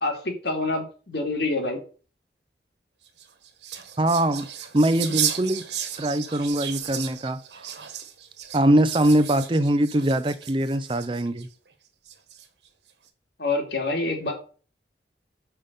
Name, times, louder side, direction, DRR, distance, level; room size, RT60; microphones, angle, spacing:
voice 1, 0.0-1.8 13.4-14.3, left 2 dB, 75° left, 2.3 m, -26 dB
sound 1, 3.1-11.5 12.1-12.7, right 9 dB, 80° right, 1.3 m, -34 dB
voice 2, 4.0-4.5 4.7-5.6 6.0-7.4 8.5-11.5, right 1 dB, 30° right, 0.5 m, -22 dB
5.7 x 5.3 x 6.6 m
head